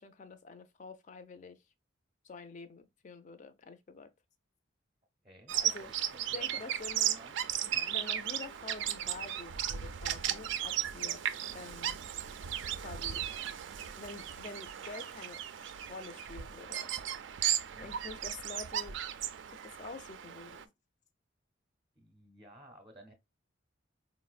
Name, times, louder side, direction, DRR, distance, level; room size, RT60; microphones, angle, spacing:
voice 1, 0.0-1.6 2.2-4.1 5.5-5.9 6.3-7.2 7.6-11.2 11.5-12.0 12.8-13.3 14.0-16.9 17.8-19.0 19.5-20.7, left 3 dB, 40° left, 0.4 m, -47 dB
Bird vocalization bird call bird song, 5.5-20.6, right 10 dB, 65° right, 0.3 m, -36 dB
voice 2, 5.8-6.7 7.2-7.3 7.7-7.9 17.7-18.0 22.0-23.1, right 1 dB, 25° right, 0.6 m, -55 dB
4.5 x 2.0 x 2.3 m
head